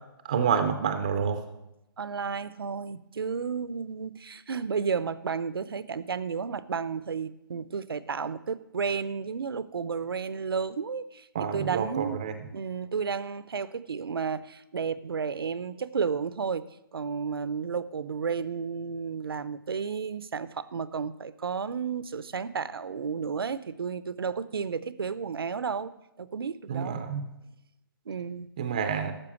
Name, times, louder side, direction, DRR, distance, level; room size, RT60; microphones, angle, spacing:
voice 1, 0.2-1.4 11.3-12.3 26.7-27.2 28.6-29.1, right 7 dB, 20° right, 0.4 m, -28 dB
voice 2, 2.0-12.3 12.5-16.6 16.9-25.9 26.2-27.0 28.1-28.5, right 6 dB, 85° right, 0.7 m, -32 dB
12.0 x 7.0 x 7.1 m
hypercardioid pair, 175°, 12 cm